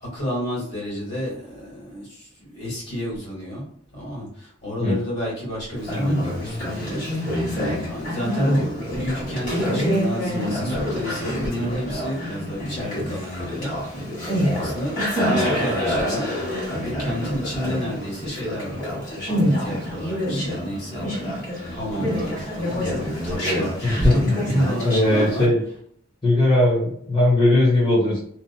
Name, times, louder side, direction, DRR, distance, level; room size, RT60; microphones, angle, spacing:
voice 1, 0.0-3.7 3.9-7.0 7.6-16.3 16.7-18.8 19.3-21.1 21.5-25.5, equal, 60° left, -5 dB, 1.4 m, -30 dB
Conversation, 5.8-25.5, equal, 45° left, 1.3 m, -26 dB
voice 2, 23.8-24.3 24.8-25.6 26.2-28.2, left 1 dB, 25° left, -7 dB, 0.6 m, -19 dB
2.6 x 2.0 x 2.6 m, 0.65 s
head